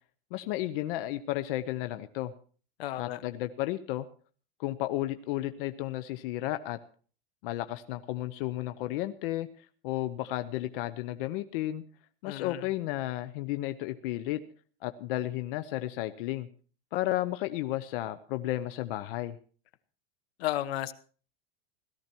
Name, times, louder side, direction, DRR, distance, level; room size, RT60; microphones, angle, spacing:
voice 1, 0.3-2.3 3.0-4.1 4.6-6.8 7.4-9.5 9.8-11.8 12.2-14.4 14.8-16.5 16.9-19.4, left 15 dB, 60° left, 10 dB, 0.9 m, -33 dB
voice 2, 2.8-3.2 12.2-12.6 20.4-20.9, left 13 dB, 85° left, 14 dB, 1.3 m, -33 dB
17.5 x 13.5 x 4.5 m, 0.42 s
supercardioid pair, 150°, 30 cm